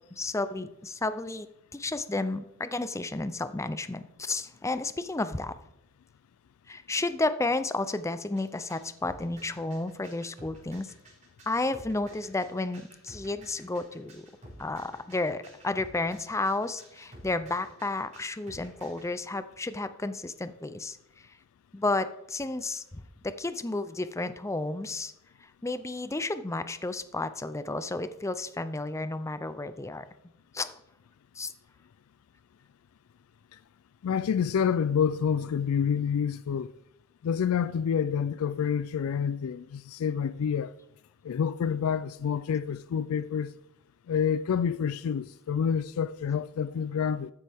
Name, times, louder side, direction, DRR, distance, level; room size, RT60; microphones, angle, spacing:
voice 1, 0.1-5.6 6.7-10.9 11.5-14.3 14.6-21.0 21.7-22.8 23.2-25.1 25.4-30.0 30.5-30.8 31.4-31.5, left 2 dB, 15° left, 0.5 m, -32 dB
sound 1, 8.4-19.1, right 1 dB, 35° right, 5.1 m, -51 dB
voice 2, 34.0-36.7 37.2-40.7 41.2-43.5 44.1-47.3, left 7 dB, 85° left, 0.4 m, -28 dB
14.0 x 9.9 x 3.5 m
head